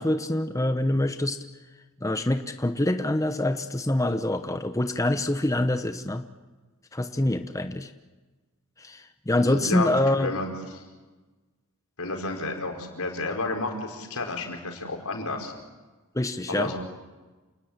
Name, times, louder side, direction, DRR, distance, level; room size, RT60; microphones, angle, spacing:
voice 1, 0.0-1.4 2.0-6.3 6.9-7.9 8.8-10.3 16.1-16.7, left 1 dB, 15° left, 8 dB, 0.9 m, -25 dB
voice 2, 9.4-10.8 12.0-15.5 16.5-16.8, left 2 dB, 90° left, 3 dB, 5.1 m, -31 dB
29.0 x 19.5 x 8.9 m, 1.2 s
head